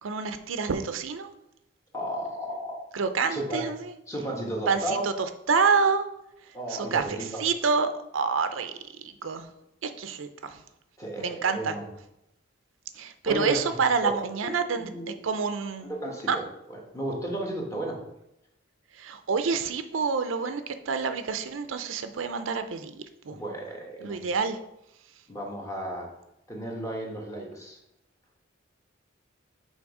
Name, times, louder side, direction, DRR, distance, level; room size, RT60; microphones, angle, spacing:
voice 1, 0.0-1.3 2.9-3.9 4.7-5.1 5.5-6.1 6.7-8.7 9.0-9.5 9.8-10.6 11.2-11.7 13.0-14.9 15.2-15.9 16.3-16.4 19.0-23.4 24.0-24.6, right 5 dB, 85° right, 9 dB, 0.5 m, -27 dB
voice 2, 1.9-2.9 3.3-3.6 4.1-5.2 6.5-7.4 11.0-11.8 13.2-13.6 14.0-15.2 15.8-16.4 16.7-18.0 23.3-24.2 25.3-26.1 26.5-27.8, right 1 dB, 15° left, -1 dB, 1.4 m, -33 dB
6.2 x 3.9 x 4.8 m, 0.84 s
head